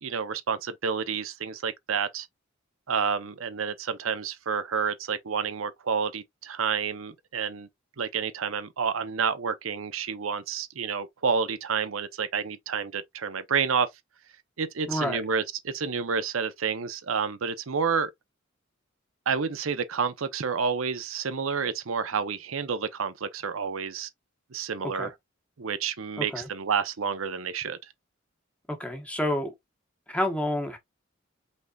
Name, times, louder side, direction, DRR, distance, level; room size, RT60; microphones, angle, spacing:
voice 1, 0.0-2.3 2.9-7.7 8.0-13.9 14.6-18.1 19.3-24.1 24.5-25.1 25.6-27.8, right 6 dB, 85° right, 0.7 m, -29 dB
voice 2, 14.9-15.2 24.9-25.1 26.2-26.5 28.7-29.5 30.1-30.8, left 1 dB, 5° left, 1.1 m, -29 dB
5.3 x 3.9 x 2.3 m
head